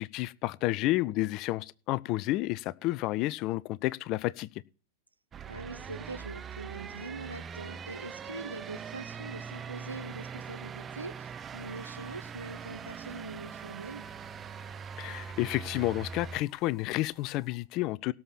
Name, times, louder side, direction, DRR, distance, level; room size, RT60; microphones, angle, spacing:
voice 1, 0.0-4.5 15.0-18.1, left 18 dB, 40° left, 0.4 m, -30 dB
sound 1, 5.3-16.4, right 6 dB, 25° right, 0.6 m, -42 dB
voice 2, 5.5-14.1, right 2 dB, 80° right, 0.9 m, -43 dB
sound 2, 11.3-17.6, left 2 dB, 5° left, 2.8 m, -62 dB
17.5 x 7.1 x 4.2 m
figure-of-eight pair, 90°, 0 cm